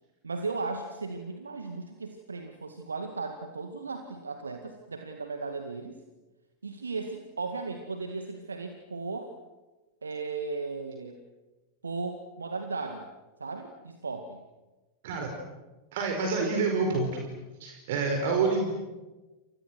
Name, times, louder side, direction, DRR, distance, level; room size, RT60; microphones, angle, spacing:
voice 1, 0.2-6.0 6.6-9.3 10.0-11.2 11.8-13.0 13.4-14.4, right 4 dB, 75° right, 6 dB, 2.1 m, -36 dB
voice 2, 15.9-17.2 17.6-18.7, right 4 dB, 55° right, 3 dB, 5.0 m, -27 dB
29.5 x 28.0 x 6.3 m, 1.1 s
figure-of-eight pair, 90°, 0 cm